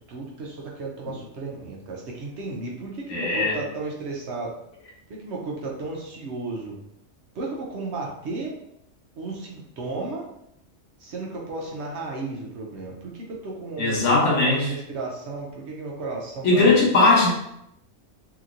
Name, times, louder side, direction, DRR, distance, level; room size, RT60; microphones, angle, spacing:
voice 1, 0.1-4.5 5.2-6.8 7.3-8.5 9.2-10.3 11.0-16.8, right 3 dB, 65° right, -2 dB, 0.9 m, -34 dB
voice 2, 3.1-3.5 13.8-14.6 16.4-17.3, left 3 dB, 70° left, -3 dB, 1.2 m, -18 dB
2.9 x 2.8 x 2.5 m, 0.79 s
omnidirectional pair, 1.3 m